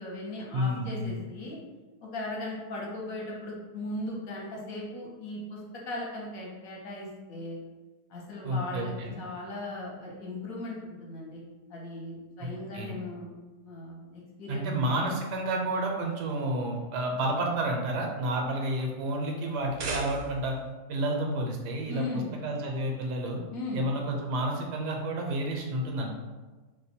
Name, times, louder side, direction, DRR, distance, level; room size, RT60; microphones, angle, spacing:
voice 1, 0.0-1.6 2.0-5.6 5.9-7.6 8.1-11.4 11.7-13.3 13.6-14.7 21.9-22.3 23.5-23.8, left 2 dB, 65° left, -3 dB, 1.1 m, -38 dB
voice 2, 0.5-1.1 8.4-9.2 12.4-12.5 12.7-12.9 14.5-20.5 20.9-23.4 23.7-26.1, right 1 dB, 85° right, 1 dB, 1.2 m, -30 dB
sound 1, 19.5-20.6, right 3 dB, 65° right, 0.8 m, -37 dB
2.8 x 2.1 x 4.1 m, 1.3 s
omnidirectional pair, 1.8 m